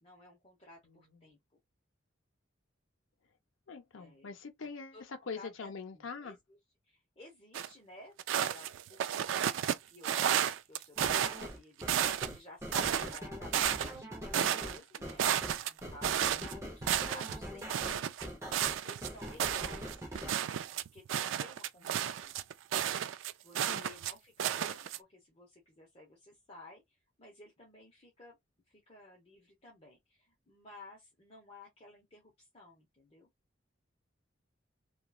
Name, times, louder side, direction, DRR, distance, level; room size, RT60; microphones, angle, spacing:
voice 1, 0.0-1.4 3.9-5.0 5.3-6.6 6.9-15.2 15.6-18.6 18.8-20.0 20.7-22.3 22.8-28.4 28.7-33.3, left 2 dB, 30° left, 0.8 m, -55 dB
voice 2, 0.8-1.3 3.7-6.4 16.1-16.5 23.7-23.8, left 5 dB, 85° left, 0.7 m, -44 dB
Snow walk, 7.5-7.7 8.2-9.8 10.0-11.5 11.8-12.4 12.7-14.0 14.3-16.5 16.8-17.4 17.7-24.1 24.4-25.0, right 10 dB, 75° right, 0.3 m, -32 dB
sound 1, 11.0-20.3, equal, 15° right, 0.7 m, -43 dB
2.9 x 2.3 x 2.3 m
head